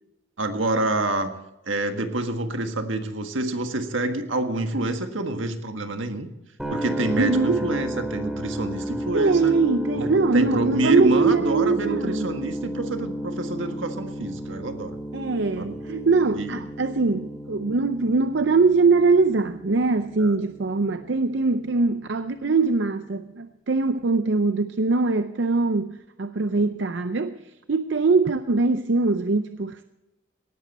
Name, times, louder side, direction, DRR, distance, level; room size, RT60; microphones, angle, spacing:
voice 1, 0.4-1.3 1.7-6.3 6.7-9.5 10.0-15.0 15.6-15.8 16.3-16.6 20.2-20.3, right 2 dB, 85° right, 1.6 m, -27 dB
sound 1, 6.6-22.5, equal, ahead, 2.4 m, -33 dB
voice 2, 7.2-7.7 9.1-12.3 15.1-27.4 27.7-29.8, right 3 dB, 65° right, 0.6 m, -22 dB
18.0 x 13.5 x 4.2 m
head